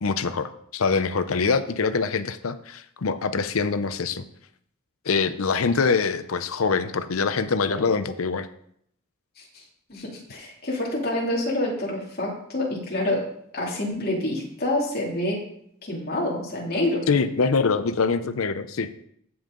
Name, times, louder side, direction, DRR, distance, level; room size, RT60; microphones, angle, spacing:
voice 1, 0.0-4.2 5.1-8.5 17.1-18.9, left 4 dB, 80° left, 11 dB, 0.7 m, -24 dB
voice 2, 9.9-13.2 13.5-15.4 15.9-17.0, left 1 dB, 45° left, -3 dB, 2.7 m, -27 dB
15.0 x 5.5 x 3.8 m, 0.70 s
head